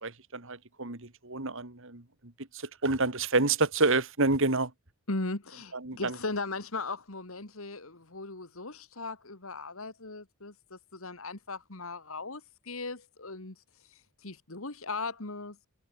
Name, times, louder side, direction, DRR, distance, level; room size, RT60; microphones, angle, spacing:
voice 1, 0.0-4.7 5.7-6.2, right 3 dB, 60° right, 2.6 m, -29 dB
voice 2, 5.1-15.7, left 3 dB, 65° left, 2.3 m, -38 dB
head